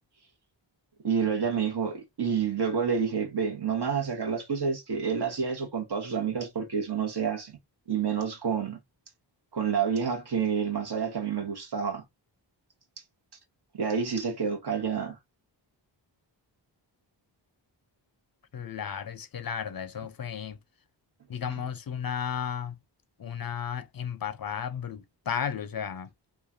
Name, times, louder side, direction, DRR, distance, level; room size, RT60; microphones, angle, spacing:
voice 1, 1.0-7.5 7.9-8.8 9.5-12.0 13.7-15.2, right 6 dB, 60° right, 1.0 m, -29 dB
voice 2, 18.5-20.6 21.3-22.7 23.2-26.1, left 8 dB, 50° left, 0.5 m, -34 dB
3.1 x 2.3 x 2.4 m
wide cardioid pair, 70°, 45 cm